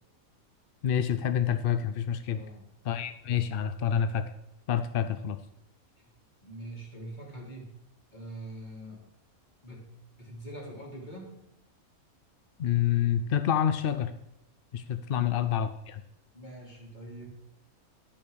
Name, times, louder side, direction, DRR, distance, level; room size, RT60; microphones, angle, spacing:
voice 1, 0.8-2.4 2.8-4.3 4.7-5.4 12.6-14.1 14.7-16.0, left 9 dB, 70° left, 10 dB, 0.5 m, -28 dB
voice 2, 2.3-2.7 6.4-7.7 8.1-9.0 9.6-9.9 10.2-11.3 15.1-15.3 16.3-17.3, right 1 dB, 30° left, -2 dB, 2.6 m, -43 dB
11.0 x 5.7 x 6.3 m, 0.82 s
omnidirectional pair, 1.5 m